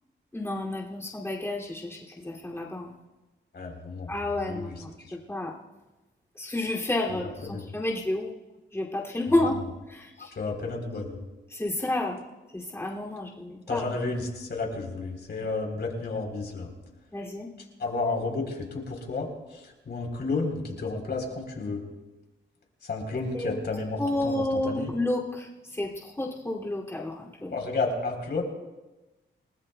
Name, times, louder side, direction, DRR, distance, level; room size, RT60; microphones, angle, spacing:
voice 1, 0.3-2.9 4.1-4.9 5.3-5.5 6.4-8.3 8.7-9.5 9.9-10.3 11.5-12.2 12.5-13.8 17.1-17.5 23.3-23.5 24.0-25.5 25.7-27.5, left 1 dB, 10° left, -4 dB, 2.7 m, -30 dB
voice 2, 3.5-4.1 4.4-5.2 7.1-7.7 9.4-9.7 10.2-11.2 13.7-16.7 17.8-21.8 22.8-24.9 27.5-28.4, left 3 dB, 55° left, 2 dB, 3.9 m, -32 dB
29.0 x 19.0 x 2.3 m, 1.1 s
wide cardioid pair, 130°, 20 cm